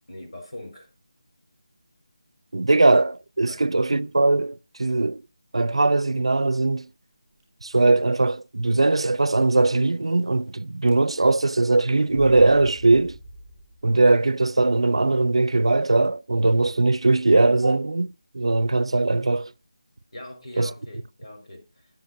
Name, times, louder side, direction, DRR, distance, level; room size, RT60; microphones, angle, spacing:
voice 1, 0.1-0.9 3.5-3.7 20.1-22.0, left 1 dB, 70° left, 4.8 m, -41 dB
voice 2, 2.5-5.2 5.5-6.9 7.6-13.2 13.8-19.5 20.6-20.7, right 2 dB, 70° right, 0.6 m, -20 dB
sound 1, 6.3-6.7 7.3-7.4 7.7-7.8 8.7-9.1 9.3-10.5 10.8-11.3 12.0-13.9, equal, 10° right, 4.6 m, -44 dB
17.0 x 7.6 x 2.6 m
figure-of-eight pair, 180°, 3 cm